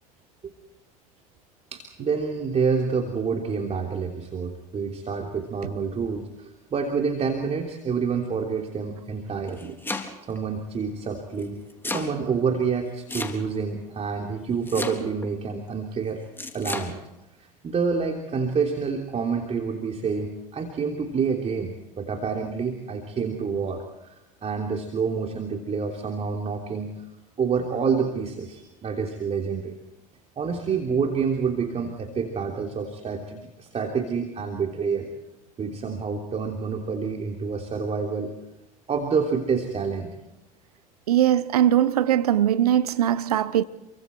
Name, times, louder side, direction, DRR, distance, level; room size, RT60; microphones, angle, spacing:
voice 1, 1.7-9.8 10.3-11.6 11.9-16.2 16.5-17.0 17.4-27.0 27.4-29.8 30.4-35.1 35.6-38.4 38.9-40.1, right 5 dB, 35° right, 3.3 m, -28 dB
Domestic sounds home sounds, 9.3-10.4 11.4-12.1 13.1-13.7 14.7-15.3 16.4-16.9, left 2 dB, 10° left, 3.8 m, -32 dB
voice 2, 41.1-43.6, right 11 dB, 85° right, 0.8 m, -20 dB
29.5 x 24.0 x 4.6 m
hypercardioid pair, 70°, 19 cm